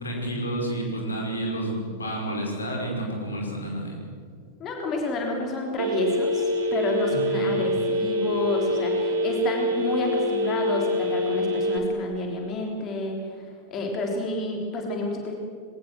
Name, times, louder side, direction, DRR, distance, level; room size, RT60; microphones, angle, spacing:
voice 1, 0.0-4.0 7.1-7.5, right 1 dB, 75° left, 1 dB, 5.2 m, -30 dB
voice 2, 4.6-15.3, left 2 dB, 30° left, 1 dB, 3.6 m, -30 dB
Telephone, 5.8-11.8, left 1 dB, 55° right, 3.3 m, -25 dB
21.5 x 18.5 x 7.7 m, 2.2 s
figure-of-eight pair, 90°, 0 cm